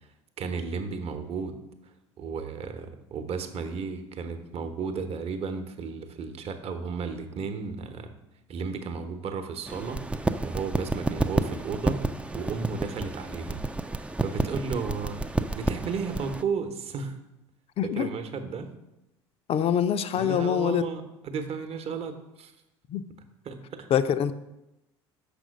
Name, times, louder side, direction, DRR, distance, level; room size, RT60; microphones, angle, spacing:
voice 1, 0.4-1.6 2.2-8.1 8.5-12.0 12.3-13.6 14.2-17.2 17.8-18.7 20.2-22.5 23.4-23.9, right 5 dB, 45° right, 7 dB, 1.0 m, -34 dB
sound 1, 9.7-16.4, right 2 dB, 10° right, 0.4 m, -30 dB
voice 2, 17.8-18.1 19.5-20.8 22.9-23.0 23.9-24.3, left 9 dB, 40° left, 12 dB, 0.5 m, -24 dB
6.2 x 5.2 x 6.3 m, 0.92 s
hypercardioid pair, 65°, 15 cm